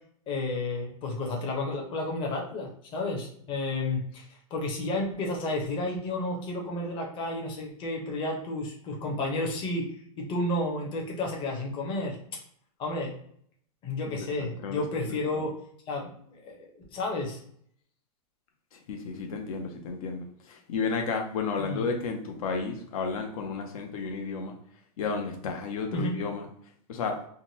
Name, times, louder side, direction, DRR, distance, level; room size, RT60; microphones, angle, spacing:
voice 1, 0.3-12.2 12.8-13.1 13.8-15.5 15.9-17.4 21.6-21.8 25.9-26.1, left 2 dB, 25° left, 0 dB, 0.9 m, -31 dB
voice 2, 14.0-14.8 15.3-15.5 18.7-24.6 25.0-26.5 26.9-27.2, left 5 dB, 65° left, 3 dB, 0.7 m, -32 dB
3.7 x 2.2 x 2.8 m, 0.64 s
hypercardioid pair, 145°, 19 cm